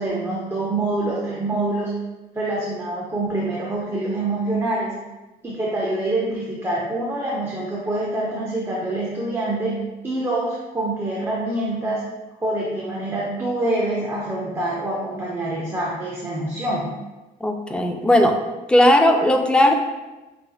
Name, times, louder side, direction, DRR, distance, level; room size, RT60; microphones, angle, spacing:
voice 1, 0.0-1.9 2.3-5.0 5.4-9.8 10.0-12.0 12.4-16.9, right 2 dB, 15° right, -5 dB, 0.8 m, -25 dB
voice 2, 17.4-18.4 18.7-19.7, left 1 dB, 5° left, 4 dB, 0.4 m, -16 dB
5.8 x 3.4 x 2.3 m, 1.1 s
cardioid pair, 110°, 17 cm